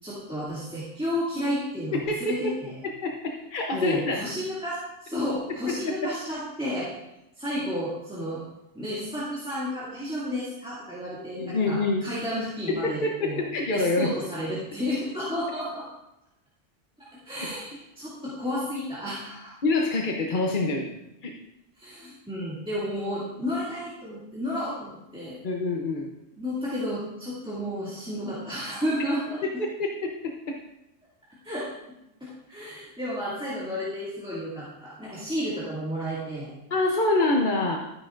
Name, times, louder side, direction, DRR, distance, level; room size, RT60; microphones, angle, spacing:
voice 1, 0.0-2.8 3.7-6.9 7.4-8.4 8.7-13.4 13.7-15.9 17.0-19.5 21.8-25.4 26.4-29.4 31.4-31.7 32.2-36.5, equal, 5° right, -9 dB, 2.3 m, -32 dB
voice 2, 3.0-4.2 5.7-5.9 11.4-12.1 12.7-14.1 19.6-20.9 21.2-21.3 25.4-26.1 29.6-29.9 30.2-30.6 36.7-37.8, left 2 dB, 45° left, 1 dB, 0.9 m, -26 dB
12.5 x 9.5 x 2.5 m, 0.89 s
omnidirectional pair, 1.3 m